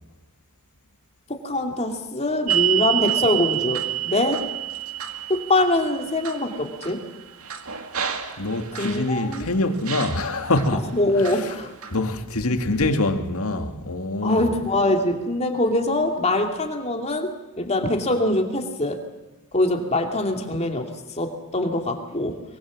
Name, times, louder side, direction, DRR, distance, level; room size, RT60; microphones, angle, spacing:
voice 1, 1.3-4.5 5.3-7.0 8.8-9.5 10.7-11.7 14.2-19.0 19.5-20.9 21.2-22.4, left 1 dB, 30° left, 2.7 m, -23 dB
sound 1, 2.5-9.4 9.9-10.7 11.2-12.0, right 12 dB, 75° right, 2.2 m, -28 dB
voice 2, 8.4-10.9 11.2-11.5 11.9-14.5, left 2 dB, 75° left, 2.0 m, -25 dB
23.5 x 22.5 x 7.4 m
head